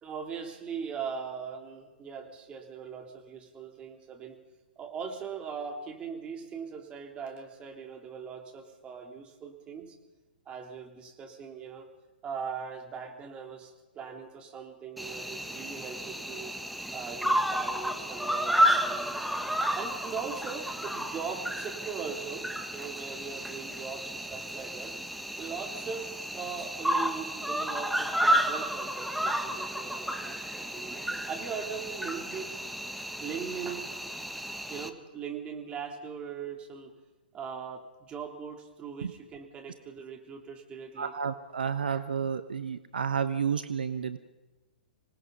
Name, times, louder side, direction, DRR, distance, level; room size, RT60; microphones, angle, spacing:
voice 1, 0.0-4.4 4.8-10.0 10.5-11.9 12.2-16.6 16.9-19.4 19.7-25.0 25.4-32.6 33.2-33.8 34.7-36.9 37.3-41.1, right 6 dB, 20° right, 3 dB, 3.6 m, -40 dB
Cricket, 15.0-34.9, equal, ahead, 1.3 m, -32 dB
voice 2, 41.0-44.2, right 7 dB, 70° right, 11 dB, 1.1 m, -31 dB
26.0 x 19.0 x 5.5 m, 1.2 s
figure-of-eight pair, 115°, 5 cm